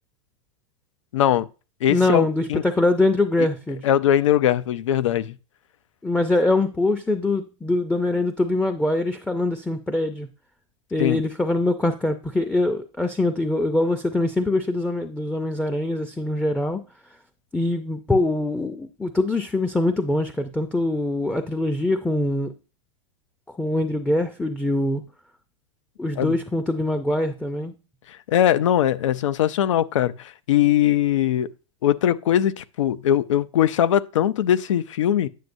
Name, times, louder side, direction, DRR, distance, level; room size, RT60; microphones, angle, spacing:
voice 1, 1.1-1.5 1.8-2.6 3.8-5.3 11.0-11.2 26.2-26.4 28.1-31.5 31.8-35.3, left 11 dB, 85° left, 0.6 m, -21 dB
voice 2, 1.9-3.9 6.0-10.3 10.9-16.8 17.5-22.5 23.6-25.0 26.0-27.7, left 2 dB, 5° left, 0.5 m, -23 dB
9.3 x 6.3 x 2.6 m
supercardioid pair, 135°, 16 cm